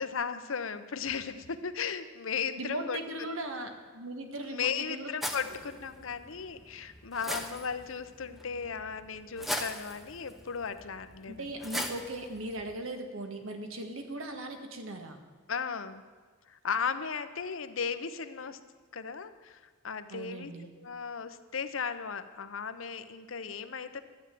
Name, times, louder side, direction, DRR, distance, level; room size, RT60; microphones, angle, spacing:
voice 1, 0.0-3.3 4.5-11.5 15.5-16.0 16.5-18.6 18.9-24.0, left 6 dB, 75° left, 11 dB, 0.8 m, -36 dB
voice 2, 2.6-5.1 5.5-5.6 11.3-15.2 20.1-20.7, right 2 dB, 85° right, 5 dB, 1.6 m, -38 dB
sound 1, 5.2-12.8, left 1 dB, ahead, 0.8 m, -41 dB
12.5 x 8.9 x 7.5 m, 1.5 s
head